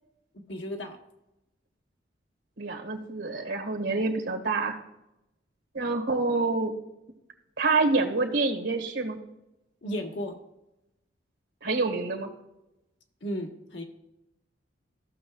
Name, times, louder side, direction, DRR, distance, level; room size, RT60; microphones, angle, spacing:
voice 1, 0.5-1.0 9.8-10.3 13.2-13.8, equal, 75° left, 2 dB, 1.4 m, -34 dB
voice 2, 2.6-4.8 5.7-6.7 7.6-9.2 11.6-12.3, right 3 dB, 85° right, 4 dB, 1.7 m, -27 dB
15.0 x 6.7 x 2.4 m, 0.89 s
head